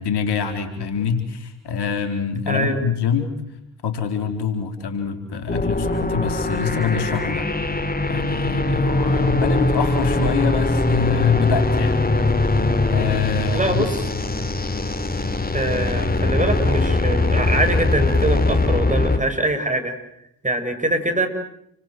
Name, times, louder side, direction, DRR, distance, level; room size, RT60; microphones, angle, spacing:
voice 1, 0.0-3.3 3.8-7.8 8.1-12.3 12.9-13.8, left 6 dB, 65° left, 7 dB, 4.2 m, -25 dB
voice 2, 2.5-2.8 13.5-13.9 15.5-20.0 20.4-21.3, right 1 dB, 15° right, 7 dB, 6.9 m, -23 dB
sound 1, 5.5-19.2, left 2 dB, 20° left, 3.3 m, -21 dB
29.5 x 24.0 x 7.9 m, 0.79 s
hypercardioid pair, 40°, 42 cm